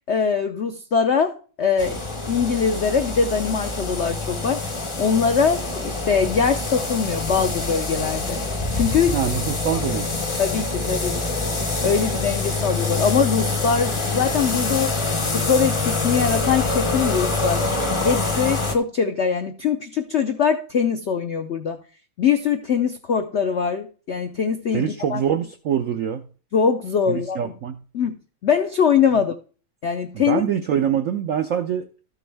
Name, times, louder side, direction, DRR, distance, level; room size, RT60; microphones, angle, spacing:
voice 1, 0.1-2.0 2.3-4.7 5.0-8.4 8.7-9.1 10.4-11.2 11.8-15.0 15.3-17.6 18.0-21.8 22.2-25.2 26.5-27.5 27.9-28.1 28.4-29.3 29.8-30.4, left 6 dB, 80° left, 8 dB, 0.6 m, -22 dB
sound 1, 1.8-18.8, left 3 dB, 30° left, 0.6 m, -25 dB
voice 2, 9.1-10.1 24.7-26.3 27.1-27.8 29.1-29.2 30.1-31.9, right 9 dB, 80° right, 8 dB, 0.7 m, -24 dB
13.5 x 6.2 x 3.4 m, 0.38 s
omnidirectional pair, 2.0 m